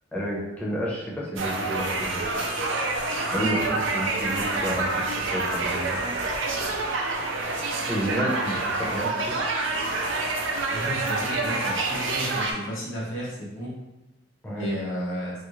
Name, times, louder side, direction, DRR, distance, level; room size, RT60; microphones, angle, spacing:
voice 1, 0.1-2.2 3.3-6.0 7.9-9.4 14.4-14.7, equal, 10° left, -5 dB, 0.7 m, -30 dB
sound 1, 1.4-12.5, right 3 dB, 70° right, 0.5 m, -27 dB
voice 2, 10.7-13.7 14.5-15.3, equal, 90° left, -7 dB, 1.1 m, -32 dB
3.7 x 2.1 x 3.1 m, 0.97 s
head